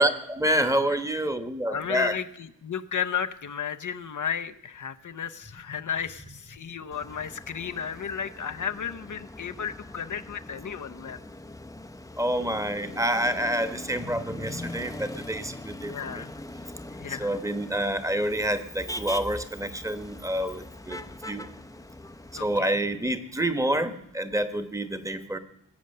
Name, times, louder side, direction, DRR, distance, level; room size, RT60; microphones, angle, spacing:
voice 1, 0.0-2.2 12.2-16.3 17.2-21.5 22.4-25.4, right 1 dB, 10° right, 10 dB, 1.2 m, -28 dB
voice 2, 1.7-11.2 15.9-16.3 17.0-17.4 22.3-22.7, left 7 dB, 65° left, 9 dB, 0.7 m, -33 dB
Motor vehicle (road), 6.9-22.6, left 1 dB, 10° left, 0.6 m, -42 dB
20.0 x 8.0 x 6.6 m, 0.76 s
wide cardioid pair, 115°, 34 cm